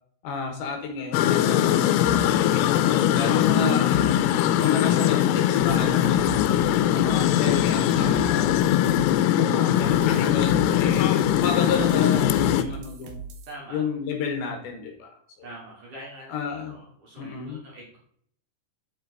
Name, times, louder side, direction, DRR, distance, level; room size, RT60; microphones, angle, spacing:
voice 1, 0.2-4.2 4.6-6.5 6.9-8.6 9.3-13.2 13.7-15.1 16.3-16.8 17.2-17.6, left 6 dB, 70° left, 3 dB, 3.1 m, -31 dB
sound 1, 1.1-12.6, left 11 dB, 90° left, 3.3 m, -21 dB
sound 2, 1.5-5.0 5.6-9.2 9.8-13.5, right 5 dB, 75° right, 2.5 m, -38 dB
voice 2, 4.9-5.3 6.4-7.5 11.4-11.6 12.4-12.8 13.5-13.9 15.4-18.1, right 1 dB, 50° right, -3 dB, 3.0 m, -44 dB
8.5 x 7.4 x 4.0 m, 0.65 s
omnidirectional pair, 5.9 m